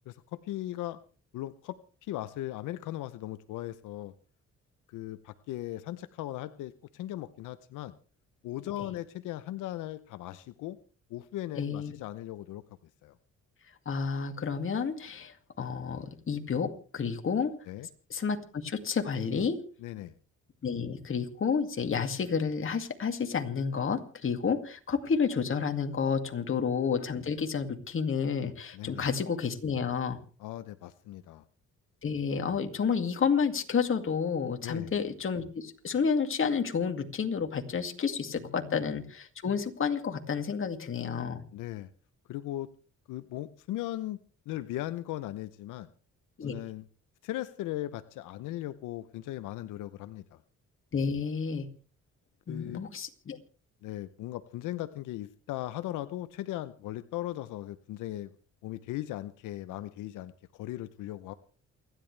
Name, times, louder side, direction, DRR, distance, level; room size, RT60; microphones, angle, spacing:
voice 1, 0.1-1.0 1.3-4.1 4.9-7.9 8.4-10.8 11.1-12.6 13.0-13.2 17.7-17.9 19.8-20.1 26.3-26.6 28.7-29.1 30.4-31.4 34.6-34.9 38.4-38.8 41.5-41.9 42.3-42.7 43.1-44.2 44.5-45.9 46.4-46.8 47.2-50.4 52.5-52.8 53.8-58.3 58.6-61.3, left 14 dB, 90° left, 12 dB, 0.8 m, -38 dB
voice 2, 11.6-11.9 13.9-17.5 18.1-19.6 20.6-30.2 32.0-41.4 46.4-46.6 50.9-51.7 52.5-53.4, left 6 dB, 45° left, 5 dB, 2.3 m, -30 dB
28.5 x 11.0 x 3.3 m, 0.39 s
cardioid pair, 90°, 30 cm